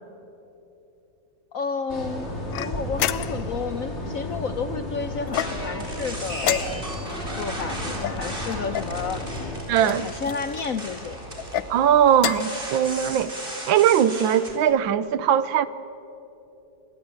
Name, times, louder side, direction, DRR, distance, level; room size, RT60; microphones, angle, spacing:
voice 1, 1.5-2.3 2.6-6.8 7.3-9.2 9.8-11.2, left 5 dB, 60° left, 1.0 m, -31 dB
sound 1, 1.9-9.6, left 1 dB, 35° left, 4.7 m, -33 dB
sound 2, 2.5-3.6 5.3-5.9 6.4-7.1 8.0-9.0 9.8-10.4 11.4-11.7 12.1-12.6, left 10 dB, 80° left, 1.5 m, -29 dB
sound 3, 5.3-14.5, right 1 dB, 25° right, 4.7 m, -36 dB
voice 2, 9.7-10.1 11.7-13.3 13.7-15.7, right 9 dB, 90° right, 1.7 m, -20 dB
26.5 x 22.5 x 8.8 m
omnidirectional pair, 2.1 m